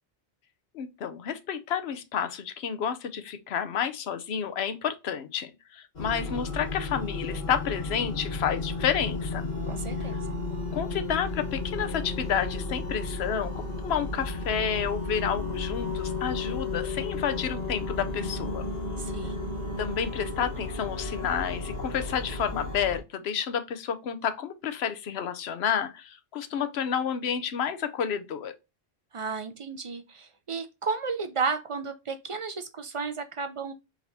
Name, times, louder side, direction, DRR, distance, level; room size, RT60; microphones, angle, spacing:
voice 1, 0.7-9.5 10.7-18.6 19.8-28.5, left 8 dB, 80° left, 0.9 m, -30 dB
sound 1, 6.0-23.0, left 3 dB, 45° left, 1.4 m, -33 dB
voice 2, 9.7-10.2 19.0-19.5 29.1-33.7, right 5 dB, 45° right, 0.4 m, -33 dB
4.8 x 3.4 x 2.7 m
omnidirectional pair, 1.1 m